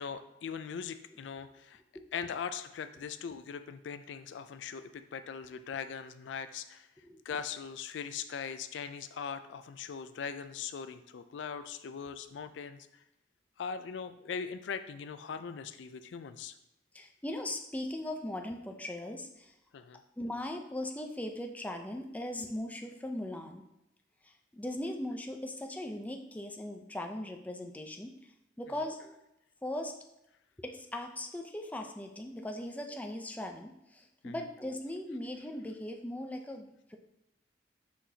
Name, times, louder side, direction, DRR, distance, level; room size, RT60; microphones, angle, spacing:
voice 1, 0.0-1.8 2.1-6.9 7.2-12.9 13.6-16.5 19.7-20.0 34.2-34.3, left 6 dB, 70° left, 10 dB, 0.4 m, -40 dB
voice 2, 16.9-19.5 20.2-23.6 24.2-28.1 28.6-29.2 29.6-29.9 30.6-37.0, left 1 dB, 10° left, 3 dB, 0.5 m, -39 dB
6.2 x 5.9 x 2.8 m, 0.87 s
head